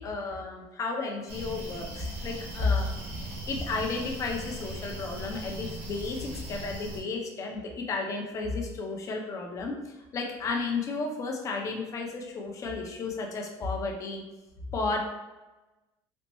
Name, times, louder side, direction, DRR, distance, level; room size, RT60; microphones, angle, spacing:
voice 1, 0.0-2.9 3.2-9.7 10.1-14.2 14.7-15.0, left 3 dB, 35° left, 1 dB, 0.6 m, -32 dB
sound 1, 1.3-7.0, right 1 dB, 70° right, 1.1 m, -39 dB
4.2 x 2.1 x 3.0 m, 1.1 s
cardioid pair, 140°, 9 cm